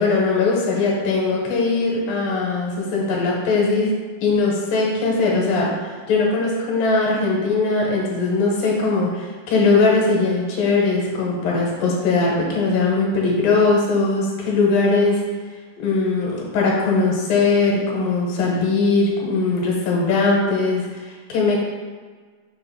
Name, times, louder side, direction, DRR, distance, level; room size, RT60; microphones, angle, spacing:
voice 1, 0.0-3.9 4.2-15.2 15.8-20.8 21.3-21.6, left 3 dB, 80° left, -3 dB, 2.8 m, -20 dB
6.7 x 2.5 x 5.5 m, 1.5 s
omnidirectional pair, 4.1 m